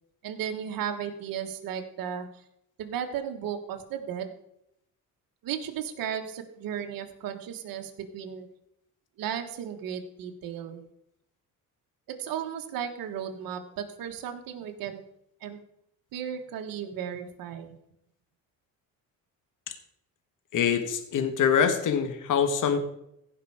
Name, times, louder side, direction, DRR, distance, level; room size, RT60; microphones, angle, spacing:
voice 1, 0.2-2.3 2.8-4.3 5.4-8.5 9.2-10.8 12.1-15.0 15.4-15.6 16.1-17.7, right 8 dB, 70° right, 5 dB, 1.6 m, -35 dB
voice 2, 20.5-22.8, left 7 dB, 60° left, 9 dB, 1.5 m, -24 dB
16.0 x 5.6 x 4.9 m, 0.78 s
cardioid pair, 95°, 35 cm